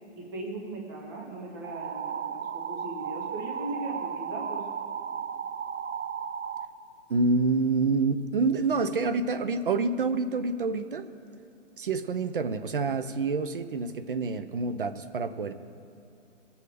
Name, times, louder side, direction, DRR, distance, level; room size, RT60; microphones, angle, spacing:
voice 1, 0.1-4.6, right 2 dB, 20° right, 0 dB, 0.9 m, -38 dB
sound 1, 1.6-6.7, right 7 dB, 90° right, 0.8 m, -35 dB
voice 2, 7.1-11.1 11.8-15.5, right 4 dB, 45° right, 12 dB, 0.6 m, -27 dB
19.5 x 7.1 x 4.9 m, 2.6 s
hypercardioid pair, 170°, 37 cm